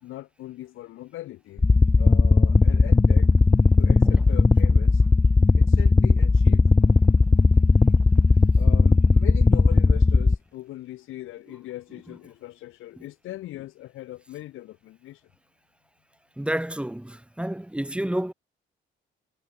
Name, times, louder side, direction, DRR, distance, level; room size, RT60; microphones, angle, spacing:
voice 1, 0.0-1.6 2.0-3.3 3.8-5.0 5.6-6.7 8.6-15.3, left 15 dB, 85° left, 3.6 m, -40 dB
sound 1, 1.6-10.4, left 3 dB, 15° left, 0.6 m, -17 dB
voice 2, 16.4-18.3, right 1 dB, 5° right, 1.1 m, -29 dB
cardioid pair, 90°, 20 cm